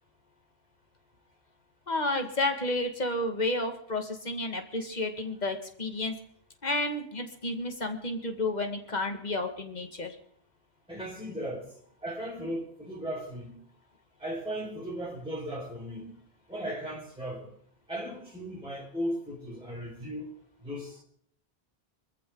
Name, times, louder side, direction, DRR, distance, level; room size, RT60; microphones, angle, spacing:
voice 1, 1.9-6.2 6.6-10.2, left 2 dB, 40° left, 2.2 m, -31 dB
voice 2, 10.9-11.6 12.0-13.6 14.2-16.1 16.5-17.5 17.9-20.3 20.6-21.0, equal, 5° right, 5.1 m, -36 dB
24.5 x 14.5 x 4.0 m
omnidirectional pair, 1.1 m